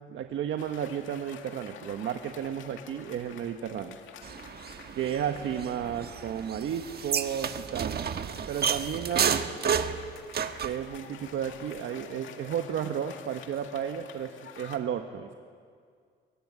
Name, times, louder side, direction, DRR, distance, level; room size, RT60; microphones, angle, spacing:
voice 1, 0.1-4.0 4.9-7.9 8.5-9.4 10.6-15.3, right 9 dB, 75° right, 5 dB, 1.5 m, -33 dB
Cheering / Applause, 0.6-14.8, left 8 dB, 75° left, 2.1 m, -49 dB
sound 1, 4.2-10.8, right 7 dB, 55° right, 1.4 m, -31 dB
23.0 x 21.5 x 9.8 m, 2.1 s
cardioid pair, 90°, 20 cm